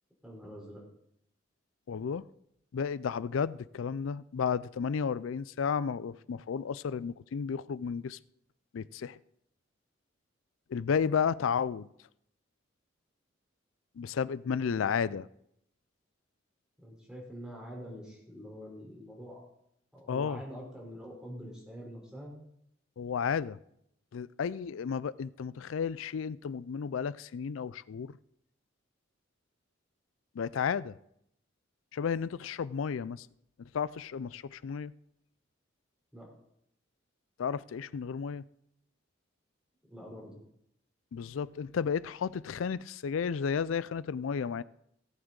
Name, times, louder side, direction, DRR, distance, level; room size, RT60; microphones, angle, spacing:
voice 1, 0.2-0.8 14.5-14.9 16.8-19.4 19.9-22.3 36.1-36.3 39.8-40.4, equal, 5° right, 3.9 m, -45 dB
voice 2, 1.9-2.3 2.7-8.2 8.7-9.2 10.7-11.9 14.0-15.3 20.1-20.4 23.0-23.6 24.1-28.2 30.3-31.0 31.9-33.3 33.6-34.9 37.4-38.4 41.1-44.6, left 6 dB, 90° left, 0.4 m, -32 dB
17.5 x 7.9 x 3.9 m
head